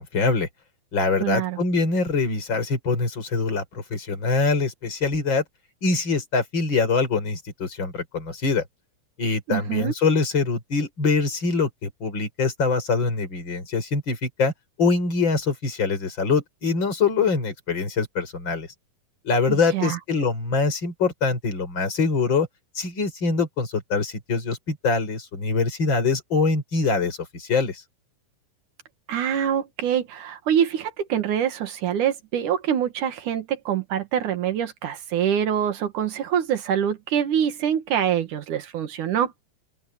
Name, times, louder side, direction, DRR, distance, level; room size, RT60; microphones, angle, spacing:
voice 1, 0.1-0.5 0.9-5.4 5.8-8.6 9.2-14.5 14.8-18.7 19.2-22.5 22.8-27.8, left 4 dB, 35° left, 5.7 m, -24 dB
voice 2, 1.2-1.6 9.5-9.9 19.5-20.0 29.1-39.3, right 9 dB, 75° right, 3.1 m, -25 dB
open air
omnidirectional pair, 3.6 m